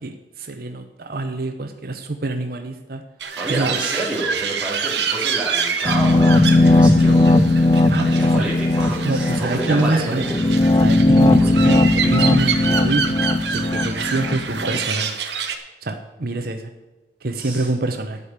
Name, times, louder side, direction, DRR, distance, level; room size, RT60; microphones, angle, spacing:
voice 1, 0.0-3.0 3.5-3.8 6.9-7.0 7.9-8.1 9.0-10.3 10.8-13.2 13.5-15.2 15.8-16.7 17.2-18.2, right 2 dB, 55° right, 6 dB, 0.8 m, -25 dB
sound 1, 3.2-15.6, right 6 dB, 75° right, 1.3 m, -27 dB
voice 2, 3.4-10.5 11.4-11.5 17.3-17.7, right 2 dB, 5° right, -8 dB, 2.8 m, -29 dB
sound 2, 5.8-14.8, left 2 dB, 25° left, 0.5 m, -17 dB
12.5 x 5.2 x 8.8 m, 1.2 s
head